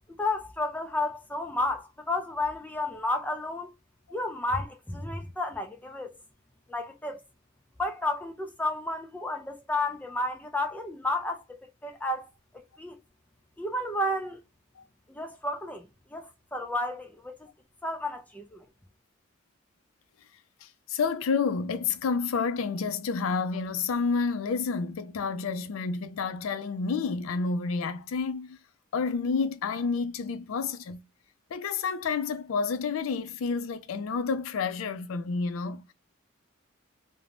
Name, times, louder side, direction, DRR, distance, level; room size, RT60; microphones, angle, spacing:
voice 1, 0.2-3.7 4.1-6.2 6.7-7.2 7.8-12.3 12.5-12.9 13.6-14.4 15.1-17.5 17.8-18.7, left 2 dB, 10° left, 0.3 m, -32 dB
voice 2, 20.6-28.6 28.9-31.0 31.5-35.9, left 5 dB, 75° left, 0.4 m, -29 dB
2.5 x 2.1 x 3.1 m
head